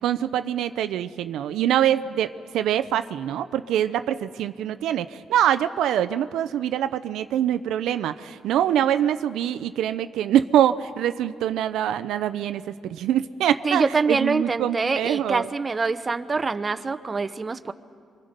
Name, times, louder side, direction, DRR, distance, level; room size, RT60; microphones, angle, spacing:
voice 1, 0.0-15.4, right 10 dB, 85° right, 11 dB, 0.6 m, -24 dB
voice 2, 13.6-17.7, right 4 dB, 30° right, 11 dB, 0.9 m, -25 dB
27.0 x 24.5 x 5.2 m, 2.3 s
cardioid pair, 90°, 0 cm